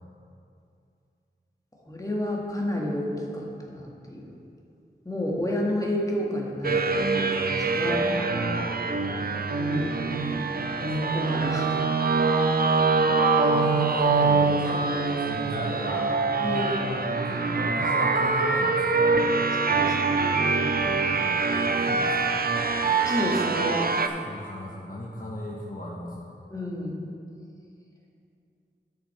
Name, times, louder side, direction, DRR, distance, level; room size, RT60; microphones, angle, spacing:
voice 1, 1.9-4.3 5.0-8.1 9.6-9.9 10.8-11.8 16.4-16.7 19.7-20.8 22.8-23.9 26.5-27.0, left 1 dB, 20° left, -3 dB, 1.7 m, -30 dB
sound 1, 6.6-24.1, right 4 dB, 50° right, 0.5 m, -24 dB
voice 2, 7.8-9.5 13.1-14.8 15.1-16.1 16.4-19.2 20.8-22.4 24.0-26.3, left 1 dB, 50° left, -4 dB, 1.1 m, -37 dB
10.5 x 6.3 x 4.3 m, 2.5 s
wide cardioid pair, 45°, 19 cm